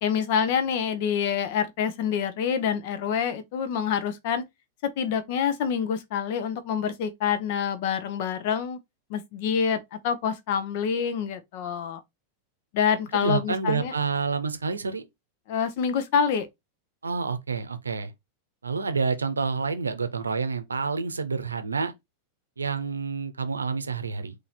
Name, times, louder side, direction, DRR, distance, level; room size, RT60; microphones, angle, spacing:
voice 1, 0.0-4.4 4.8-8.8 9.1-12.0 12.7-13.9 15.5-16.5, left 7 dB, 50° left, 0.8 m, -26 dB
voice 2, 13.1-15.0 17.0-18.1 18.6-21.9 22.6-24.3, right 5 dB, 75° right, 0.7 m, -28 dB
4.1 x 2.8 x 4.0 m
figure-of-eight pair, 90°, 0 cm